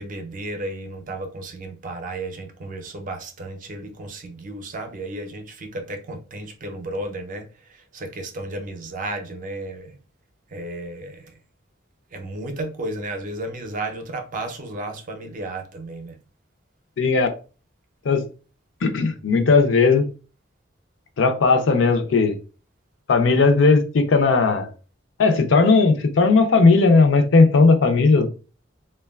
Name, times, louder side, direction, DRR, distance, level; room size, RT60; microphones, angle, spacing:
voice 1, 0.0-10.0 10.5-11.4 12.1-16.2, right 2 dB, 45° right, 0.5 m, -33 dB
voice 2, 17.0-17.3 18.1-18.2 18.8-20.1 21.2-22.4 23.1-24.7 25.2-28.3, left 4 dB, 75° left, 0.5 m, -17 dB
2.9 x 2.2 x 2.2 m
head